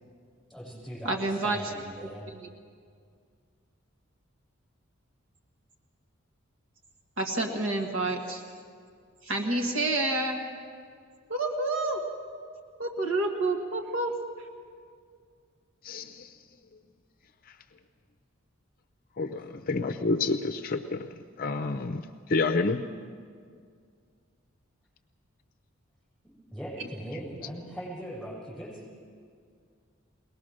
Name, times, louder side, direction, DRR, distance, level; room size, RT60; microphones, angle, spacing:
voice 1, 0.5-2.3 19.4-19.5 26.5-28.8, equal, ahead, -6 dB, 7.7 m, -40 dB
voice 2, 1.0-1.7 2.3-2.5 7.2-8.4 9.2-10.4 11.3-12.0 12.8-14.5, right 2 dB, 70° right, 2 dB, 1.7 m, -29 dB
voice 3, 15.8-16.3 19.2-21.1 21.4-22.0 22.3-22.8, left 3 dB, 45° left, 8 dB, 0.6 m, -28 dB
22.5 x 19.0 x 6.5 m, 2.2 s
head